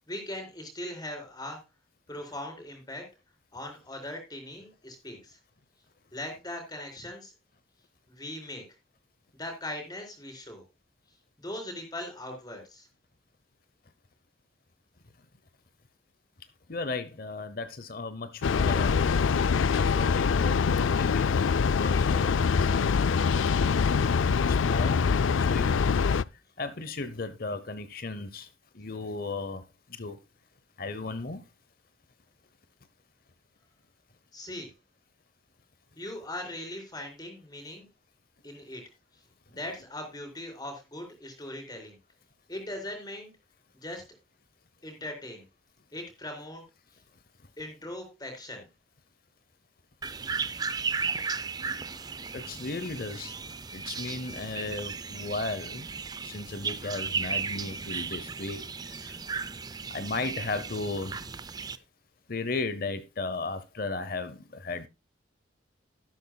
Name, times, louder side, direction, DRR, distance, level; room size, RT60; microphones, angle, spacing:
voice 1, 0.1-1.6 2.1-3.1 3.5-5.4 6.1-7.3 8.1-8.6 9.4-10.6 11.4-12.9 34.3-34.7 36.0-37.9 38.4-38.8 39.6-42.0 42.5-43.3 43.8-44.0 44.8-45.4 45.9-46.6 47.6-48.7, left 1 dB, 20° left, 4.2 m, -39 dB
voice 2, 16.7-19.1 19.7-20.6 20.9-24.1 24.5-25.1 25.4-25.8 26.6-28.5 28.7-29.6 29.9-30.2 30.8-31.4 52.3-53.4 53.7-55.9 56.2-59.2 59.9-61.2 62.3-64.9, left 3 dB, 50° left, 0.8 m, -35 dB
Train, 18.4-26.2, left 5 dB, 90° left, 0.4 m, -24 dB
sound 1, 50.0-61.8, right 5 dB, 20° right, 0.5 m, -35 dB
12.5 x 12.5 x 2.3 m
head